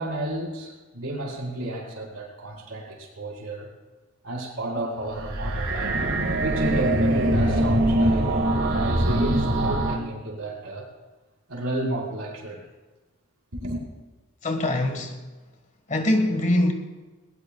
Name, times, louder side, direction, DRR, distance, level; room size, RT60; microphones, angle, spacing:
voice 1, 0.0-3.7 4.2-6.0 6.3-8.3 8.7-10.9 11.5-12.7 13.5-13.8, right 1 dB, 80° right, 4.2 m, -32 dB
sound 1, 5.0-10.0, right 1 dB, 65° right, 1.8 m, -23 dB
voice 2, 14.4-15.2 15.9-16.7, left 1 dB, 35° left, 1.5 m, -23 dB
20.5 x 19.5 x 2.3 m
head